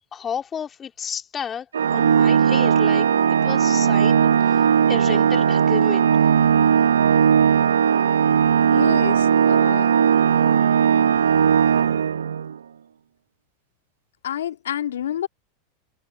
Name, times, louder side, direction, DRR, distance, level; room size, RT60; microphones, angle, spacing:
voice 1, 0.1-6.1, left 7 dB, 30° left, 3.1 m, -32 dB
Organ, 1.7-12.6, right 8 dB, 80° right, 1.0 m, -18 dB
voice 2, 8.7-9.9 14.2-15.3, left 10 dB, 75° left, 2.0 m, -28 dB
hypercardioid pair, 90°, 0 cm